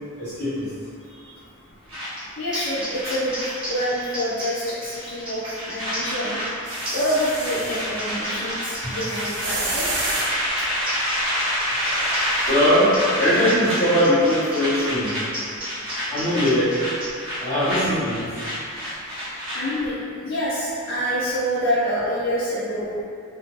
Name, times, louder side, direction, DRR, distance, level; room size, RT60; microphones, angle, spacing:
voice 1, 0.2-0.7 12.5-15.1 16.1-16.7 17.4-18.3, equal, 10° left, -16 dB, 1.2 m, -20 dB
sound 1, 1.9-4.2 4.4-4.7 5.0-19.9, equal, 65° right, 1.1 m, -28 dB
sound 2, 2.2-2.3 2.5-17.1, equal, 20° right, 0.7 m, -35 dB
voice 2, 2.4-6.4 6.7-9.9 11.6-12.1 19.3-23.0, equal, 55° left, -9 dB, 0.5 m, -27 dB
sound 3, 6.7-7.9 9.0-10.3 12.5-12.6, right 3 dB, 80° right, 0.5 m, -31 dB
2.5 x 2.1 x 3.0 m, 2.3 s
head